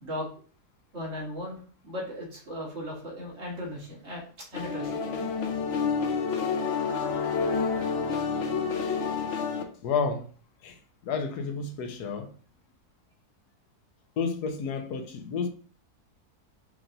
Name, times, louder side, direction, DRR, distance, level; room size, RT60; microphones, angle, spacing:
voice 1, 0.9-1.6 1.8-5.0, left 1 dB, 50° right, 1.5 m, -37 dB
sound 1, 4.5-9.6, left 5 dB, 70° left, 0.6 m, -28 dB
voice 2, 9.8-10.3 10.6-12.3 14.2-15.5, left 5 dB, 85° left, 1.2 m, -31 dB
4.7 x 2.9 x 2.6 m
omnidirectional pair, 1.7 m